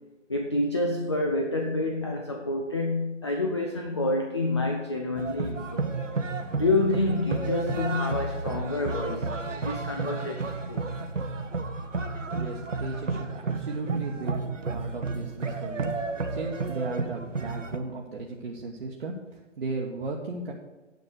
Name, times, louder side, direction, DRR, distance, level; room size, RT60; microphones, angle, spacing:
voice 1, 0.3-5.9 6.5-10.8, left 2 dB, 25° left, 3 dB, 0.4 m, -28 dB
sound 1, 5.2-17.8, right 3 dB, 80° right, 1.0 m, -32 dB
voice 2, 12.3-15.9 16.3-20.5, right 3 dB, 50° right, -2 dB, 1.2 m, -36 dB
9.5 x 5.3 x 6.2 m, 1.1 s
figure-of-eight pair, 140°, 37 cm